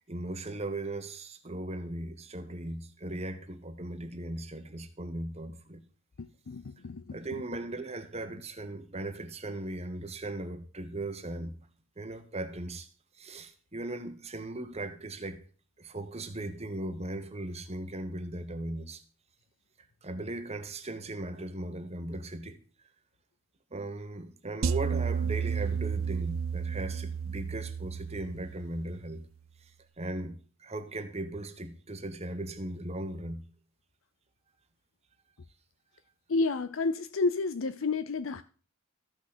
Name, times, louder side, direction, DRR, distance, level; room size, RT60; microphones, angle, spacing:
voice 1, 0.1-5.8 7.1-11.6 12.0-12.9 13.1-15.4 15.8-19.0 20.0-22.6 23.7-29.3 29.6-29.7 30.0-33.5, right 2 dB, 30° right, 1.3 m, -38 dB
voice 2, 6.2-7.2 36.3-38.4, left 3 dB, 70° left, 0.5 m, -30 dB
sound 1, 24.6-28.9, right 6 dB, 80° right, 0.6 m, -32 dB
14.0 x 6.3 x 6.1 m
head